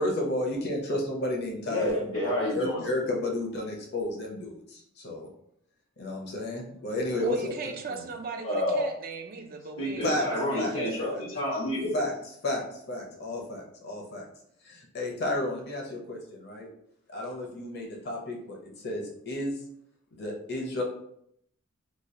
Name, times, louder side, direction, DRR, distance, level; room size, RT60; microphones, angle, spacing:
voice 1, 0.0-2.0 2.5-5.3 6.0-7.5 10.0-10.3 10.6-10.7 11.1-11.2 11.9-12.1 12.4-14.2 14.6-16.7 17.1-19.6 20.1-20.8, left 1 dB, 55° left, 0 dB, 0.9 m, -32 dB
voice 2, 1.7-2.9 8.4-8.9 9.8-12.0, left 1 dB, 80° left, -8 dB, 1.1 m, -29 dB
voice 3, 7.2-10.9, right 4 dB, 45° right, 5 dB, 0.5 m, -38 dB
3.1 x 2.4 x 3.7 m, 0.72 s
head